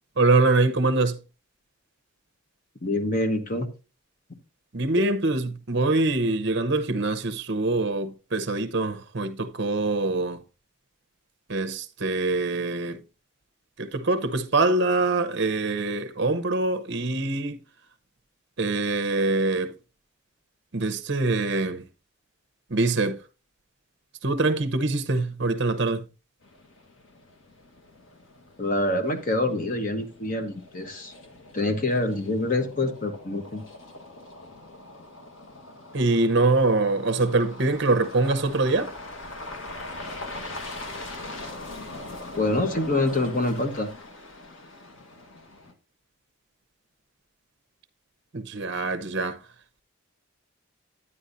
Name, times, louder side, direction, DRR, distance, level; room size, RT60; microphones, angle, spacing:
voice 1, 0.2-1.2 4.7-10.4 11.5-13.0 13.8-17.6 18.6-19.7 20.7-21.8 22.7-23.2 24.2-26.0 35.9-38.9 48.3-49.4, right 2 dB, 55° right, 0.8 m, -24 dB
voice 2, 2.8-3.7 5.0-5.1 28.6-31.1 31.5-33.6 42.4-43.9, left 2 dB, 40° left, 1.1 m, -26 dB
sound 1, 26.4-45.7, left 2 dB, 70° left, 1.4 m, -42 dB
9.8 x 9.6 x 2.6 m
head